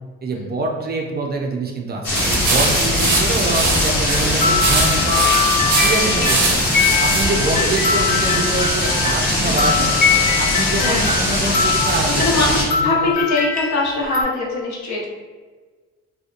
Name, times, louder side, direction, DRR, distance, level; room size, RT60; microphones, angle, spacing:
voice 1, 0.2-5.2 5.6-6.6 7.0-10.0 10.4-13.1, right 3 dB, 35° right, 0 dB, 0.4 m, -25 dB
sound 1, 2.0-12.6, left 1 dB, 85° left, 1.0 m, -21 dB
sound 2, 2.1-7.3, right 3 dB, 75° right, 0.6 m, -22 dB
sound 3, 4.0-14.2, left 6 dB, 30° left, 0.6 m, -22 dB
voice 2, 10.7-11.2 12.0-15.1, left 2 dB, 65° left, -3 dB, 0.8 m, -22 dB
2.7 x 2.1 x 2.5 m, 1.4 s
cardioid pair, 90°, 30 cm